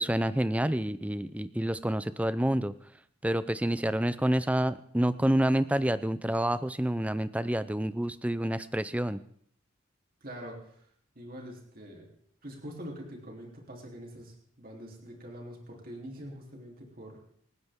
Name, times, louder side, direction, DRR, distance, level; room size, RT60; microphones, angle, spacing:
voice 1, 0.0-2.7 3.2-9.2, right 1 dB, 5° right, 14 dB, 0.5 m, -28 dB
voice 2, 10.2-10.9 11.2-12.1 12.4-17.2, equal, 45° right, 0 dB, 3.4 m, -44 dB
27.5 x 9.6 x 3.7 m, 0.64 s
head